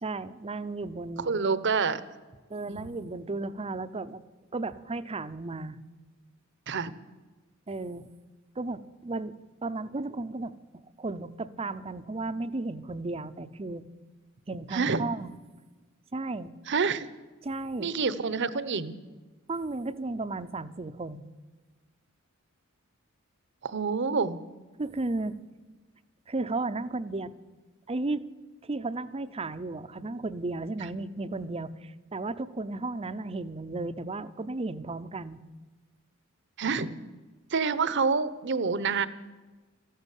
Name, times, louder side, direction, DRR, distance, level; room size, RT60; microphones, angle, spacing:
voice 1, 0.0-1.3 2.5-4.2 4.5-5.8 7.7-8.1 8.6-9.4 9.6-13.8 14.5-15.3 16.1-16.5 17.4-17.9 19.5-21.2 24.8-25.4 26.3-27.3 27.9-28.2 28.6-35.4, right 2 dB, 30° right, 14 dB, 0.6 m, -34 dB
voice 2, 1.2-2.0 2.7-3.0 6.7-6.9 14.7-15.0 16.7-17.1 17.8-19.0 23.6-24.4 36.6-36.9 37.5-39.1, right 5 dB, 55° right, 16 dB, 0.9 m, -27 dB
14.0 x 12.5 x 8.2 m, 1.2 s
head